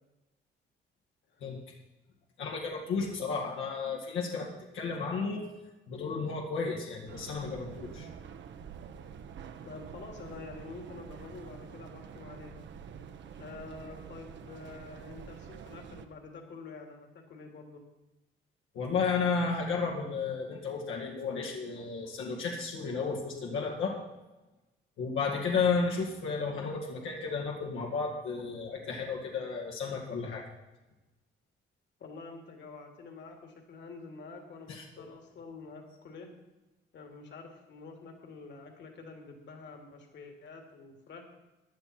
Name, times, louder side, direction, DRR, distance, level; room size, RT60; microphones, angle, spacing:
voice 1, 2.4-5.5 5.9-8.1 18.7-24.0 25.0-30.4 34.7-34.9, left 4 dB, 85° left, -2 dB, 2.1 m, -33 dB
sound 1, 7.1-16.1, right 7 dB, 65° right, 1.1 m, -47 dB
voice 2, 9.6-12.5 13.4-17.8 32.0-36.3 36.9-41.2, left 4 dB, 65° left, 3 dB, 2.7 m, -47 dB
16.5 x 10.5 x 4.4 m, 1.1 s
cardioid pair, 90°, 20 cm